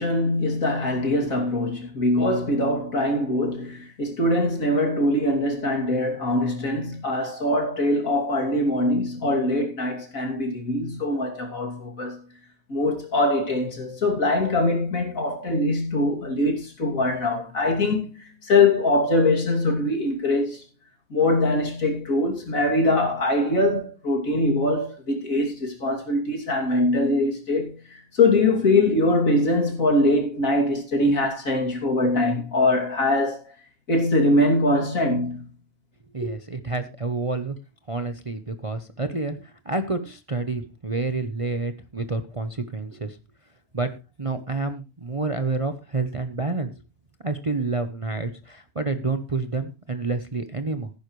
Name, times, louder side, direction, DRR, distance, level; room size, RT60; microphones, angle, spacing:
voice 1, 0.0-12.2 12.7-20.6 21.1-33.5 33.9-35.5 36.2-36.3, left 2 dB, 65° left, 3.2 m, -23 dB
voice 2, 36.1-37.6 37.9-43.2 43.7-43.9 44.2-46.7 47.2-50.9, right 3 dB, 30° right, 0.8 m, -28 dB
15.0 x 11.0 x 3.2 m
omnidirectional pair, 1.5 m